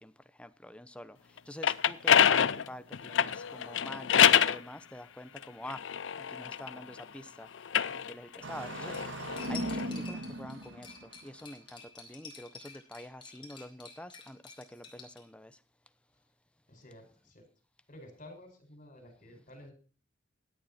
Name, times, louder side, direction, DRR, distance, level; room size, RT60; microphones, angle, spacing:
voice 1, 0.4-1.1 1.5-5.8 6.4-6.9 7.4-7.5 8.1-8.9 9.5-10.9 11.2-11.6 12.1-12.5 12.9-14.4 14.7-15.1 15.3-15.5, left 1 dB, 5° left, 12 dB, 0.8 m, -46 dB
sound 1, 1.4-4.6 5.4-7.0 7.6-9.9, left 8 dB, 75° left, 0.6 m, -26 dB
Engine starting, 8.4-11.4, right 1 dB, 75° right, 1.7 m, -38 dB
Cutlery silverware, 8.9-15.2, left 5 dB, 25° left, 4.6 m, -50 dB
voice 2, 16.7-17.5 17.9-19.7, left 1 dB, 45° left, 5 dB, 5.5 m, -52 dB
17.5 x 10.5 x 4.3 m, 0.38 s
head